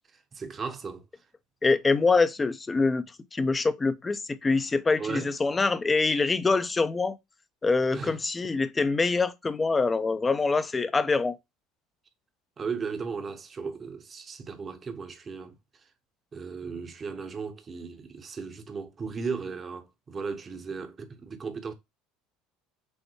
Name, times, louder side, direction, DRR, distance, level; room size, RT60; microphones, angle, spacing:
voice 1, 0.3-1.0 5.0-5.3 7.9-8.2 12.6-15.5 16.3-21.7, right 5 dB, 30° right, 0.8 m, -36 dB
voice 2, 1.6-3.0 3.3-7.2 7.6-11.4, left 4 dB, 20° left, 0.5 m, -25 dB
6.3 x 2.1 x 3.0 m
supercardioid pair, 100°, 0 cm